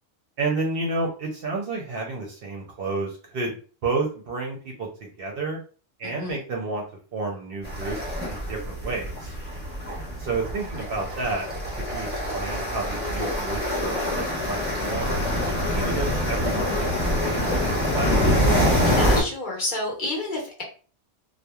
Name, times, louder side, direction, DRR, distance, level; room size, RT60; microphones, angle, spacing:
voice 1, 0.4-5.6 6.0-6.8 7.1-9.3 10.2-11.5 11.8-15.2 15.7-18.2, right 3 dB, 60° right, -1 dB, 0.7 m, -31 dB
voice 2, 6.0-6.4 18.8-20.6, left 2 dB, 45° left, -3 dB, 1.0 m, -29 dB
sound 1, 7.6-19.2, left 1 dB, 10° right, 0.9 m, -25 dB
2.9 x 2.1 x 2.3 m, 0.39 s
omnidirectional pair, 1.2 m